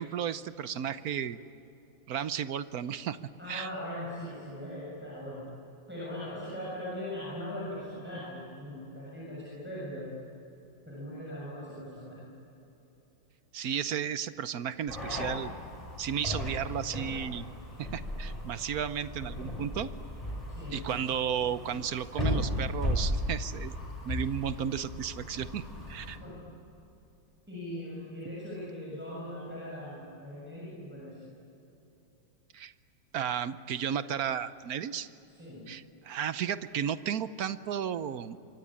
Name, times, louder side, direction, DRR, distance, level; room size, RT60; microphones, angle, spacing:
voice 1, 0.0-1.4 2.1-3.2 3.5-3.7 13.5-15.5 16.0-17.5 17.8-19.9 20.7-23.7 24.1-26.2 32.5-32.7 33.1-35.1 35.7-38.4, right 8 dB, 60° right, 13 dB, 1.1 m, -33 dB
voice 2, 3.4-5.5 5.9-10.2 10.8-12.2 20.5-20.9 26.2-26.4 27.5-31.3 35.3-35.6, left 1 dB, 5° right, -6 dB, 6.8 m, -40 dB
sound 1, 14.9-26.2, left 1 dB, 20° left, 6.2 m, -36 dB
26.0 x 24.0 x 8.8 m, 3.0 s
omnidirectional pair, 2.0 m